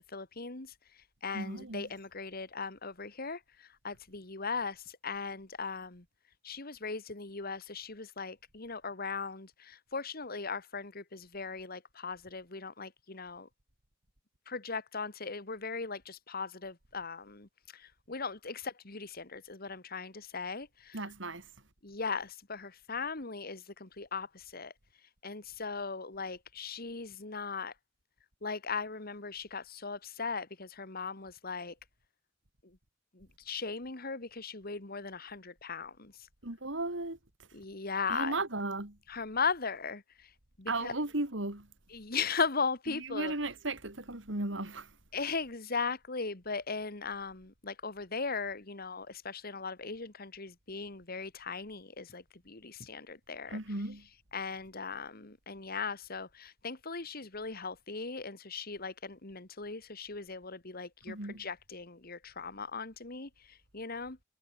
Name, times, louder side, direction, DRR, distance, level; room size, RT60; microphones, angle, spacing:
voice 1, 0.1-0.7 1.2-6.0 6.4-13.5 14.5-21.1 21.8-24.7 25.2-27.7 28.4-31.7 33.1-36.1 37.5-38.4 39.1-40.0 40.6-40.9 41.9-43.3 45.1-53.6 54.3-63.3 63.7-64.2, left 4 dB, 50° left, 2.2 m, -38 dB
voice 2, 1.3-1.9 20.9-21.5 36.4-37.2 38.1-39.0 40.7-41.7 42.9-44.9 53.5-54.0 61.1-61.4, right 2 dB, 65° right, 3.4 m, -35 dB
head